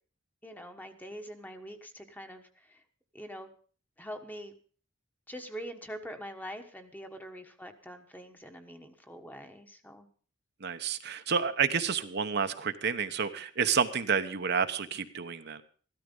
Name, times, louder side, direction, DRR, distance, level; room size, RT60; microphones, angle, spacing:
voice 1, 0.4-2.8 3.1-3.5 4.0-4.6 5.3-10.1, equal, 10° left, 6 dB, 1.3 m, -44 dB
voice 2, 10.6-15.6, right 6 dB, 55° right, 8 dB, 1.0 m, -30 dB
14.5 x 13.0 x 5.3 m, 0.42 s
head